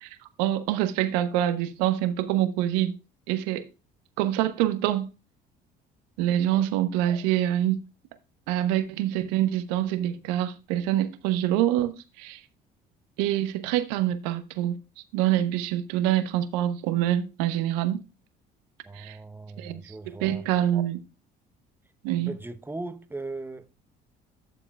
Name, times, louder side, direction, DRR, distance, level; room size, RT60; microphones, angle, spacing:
voice 1, 0.0-3.0 3.3-3.7 4.2-5.1 6.2-7.8 8.5-12.4 13.2-14.8 15.1-18.0 18.9-19.2 19.6-19.9 20.2-21.0 22.0-22.3, right 12 dB, 80° right, 1.0 m, -26 dB
voice 2, 18.8-20.5 22.2-23.7, right 2 dB, 10° right, 0.9 m, -38 dB
12.0 x 7.0 x 2.4 m
hypercardioid pair, 65°, 21 cm